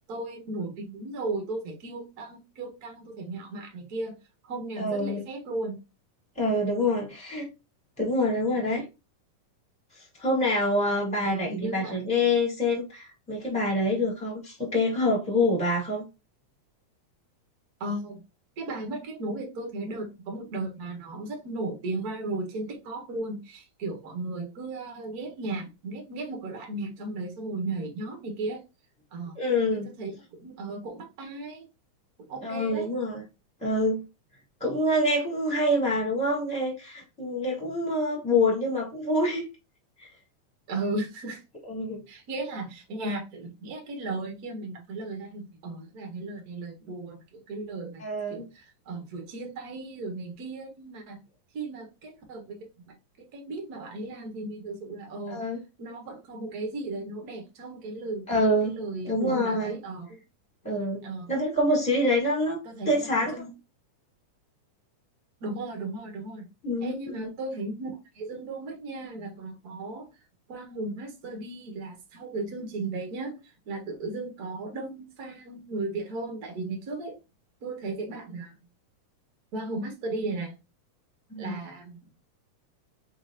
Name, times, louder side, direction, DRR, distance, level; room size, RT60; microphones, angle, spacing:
voice 1, 0.1-4.2 4.4-5.8 11.2-12.0 17.8-18.2 18.6-28.6 29.1-29.4 29.7-31.7 32.2-32.9 40.7-41.4 42.1-48.0 48.3-51.2 51.5-55.4 55.8-58.2 58.6-60.2 61.0-61.3 62.6-63.5 65.4-66.5 66.8-67.9 68.1-70.1 70.5-77.2 77.6-78.5 79.5-80.5 81.4-82.0, right 2 dB, 50° right, 1.1 m, -35 dB
voice 2, 4.8-5.2 6.4-7.5 8.0-8.8 10.2-16.0 29.4-29.9 32.4-33.2 33.6-34.0 34.6-39.5 41.7-42.0 48.0-48.4 55.3-55.6 58.3-58.7 59.0-59.8 60.6-62.6 62.9-63.3 66.6-67.3 81.3-81.6, left 1 dB, ahead, 1.8 m, -26 dB
5.0 x 3.9 x 2.5 m
omnidirectional pair, 3.6 m